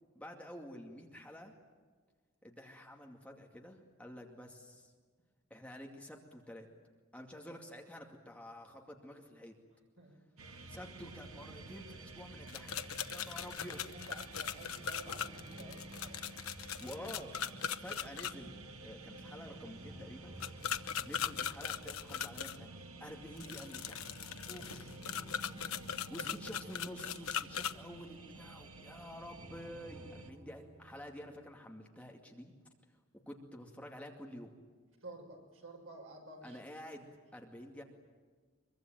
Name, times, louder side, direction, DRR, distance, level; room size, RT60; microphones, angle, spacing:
voice 1, 0.2-1.5 2.4-4.9 5.5-6.7 7.1-9.5 10.7-13.8 16.8-17.3 17.8-20.4 21.0-25.0 26.1-32.5 33.3-34.5 36.4-37.1 37.3-37.8, equal, 5° left, 1 dB, 2.4 m, -49 dB
sound 1, 10.4-30.3, right 2 dB, 90° right, 1.9 m, -51 dB
sound 2, 12.5-18.3 20.4-22.6 23.4-27.7, left 8 dB, 90° left, 0.9 m, -39 dB
voice 2, 13.9-16.3 35.0-36.6, right 2 dB, 70° right, 2 dB, 6.2 m, -51 dB
sound 3, 15.0-19.4 19.8-23.1 24.6-28.6 29.4-31.6, right 1 dB, 25° right, 2.7 m, -56 dB
24.0 x 23.5 x 9.1 m, 1.5 s
head